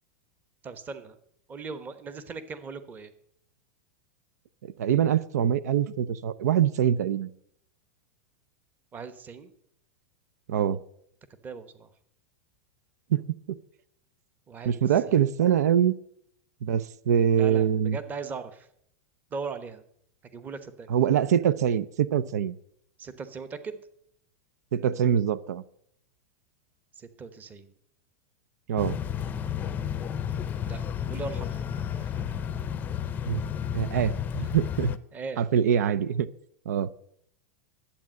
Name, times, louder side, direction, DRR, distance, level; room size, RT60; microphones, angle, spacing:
voice 1, 0.6-1.2 1.5-3.1 8.9-9.5 11.4-11.9 14.5-14.8 17.3-18.7 19.3-19.8 20.3-20.9 23.0-23.8 26.9-27.7 30.6-31.6 32.0-32.2 35.1-35.4, right 4 dB, 20° right, 12 dB, 1.1 m, -39 dB
voice 2, 4.6-7.3 10.5-10.8 13.1-13.2 13.5-13.6 14.7-15.9 16.6-18.0 20.9-22.6 24.7-25.6 28.7-29.0 33.3-33.4 33.7-34.9 35.4-36.3 36.7-36.9, right 9 dB, 85° right, 18 dB, 0.6 m, -24 dB
sound 1, 28.8-35.0, left 8 dB, 20° left, 0.6 m, -32 dB
12.0 x 8.6 x 7.6 m, 0.70 s
supercardioid pair, 145°, 9 cm